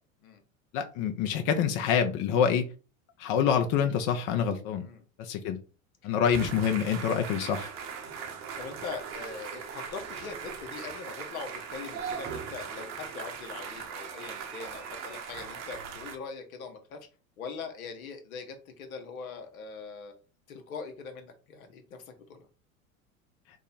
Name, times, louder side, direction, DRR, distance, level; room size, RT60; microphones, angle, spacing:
voice 1, 0.7-2.7 3.2-4.8 5.2-5.6 6.0-7.7, left 7 dB, 45° left, 5 dB, 0.7 m, -26 dB
sound 1, 6.3-16.2, right 7 dB, 40° right, 0.8 m, -39 dB
voice 2, 8.6-17.1 17.4-20.2 20.5-22.5, left 5 dB, 80° left, 6 dB, 1.0 m, -42 dB
3.5 x 2.1 x 4.0 m, 0.35 s
hypercardioid pair, 85°, 42 cm